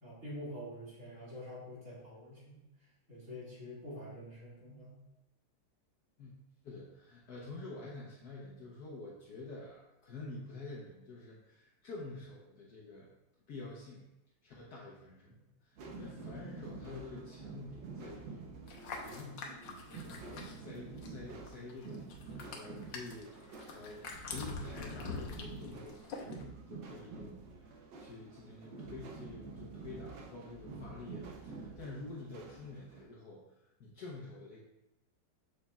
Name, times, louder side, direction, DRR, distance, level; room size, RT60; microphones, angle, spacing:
voice 1, 0.0-2.6 3.1-4.9, equal, 45° right, -7 dB, 2.6 m, -46 dB
voice 2, 6.6-13.1 13.5-14.0 14.4-19.5 20.2-24.0 24.3-34.6, left 3 dB, 65° left, -3 dB, 1.3 m, -48 dB
sound 1, 15.8-33.0, right 4 dB, 85° right, 1.5 m, -48 dB
sound 2, 18.7-21.2 21.5-26.4, left 4 dB, 85° left, 1.5 m, -45 dB
7.0 x 6.4 x 2.4 m, 0.91 s
omnidirectional pair, 1.9 m